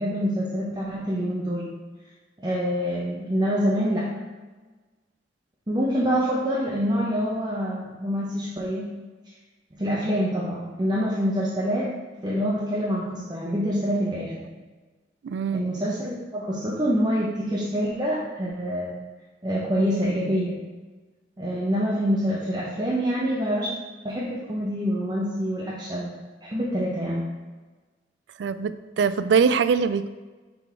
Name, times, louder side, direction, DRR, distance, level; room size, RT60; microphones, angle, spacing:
voice 1, 0.0-1.7 2.4-4.1 5.7-8.9 9.7-11.9 12.2-14.5 15.5-19.0 19.4-20.6 21.4-23.7 24.0-26.1 26.4-27.3, equal, 25° right, -5 dB, 0.8 m, -26 dB
voice 2, 15.2-15.7 28.4-30.1, right 6 dB, 70° right, 13 dB, 0.3 m, -22 dB
5.9 x 3.9 x 4.5 m, 1.3 s
head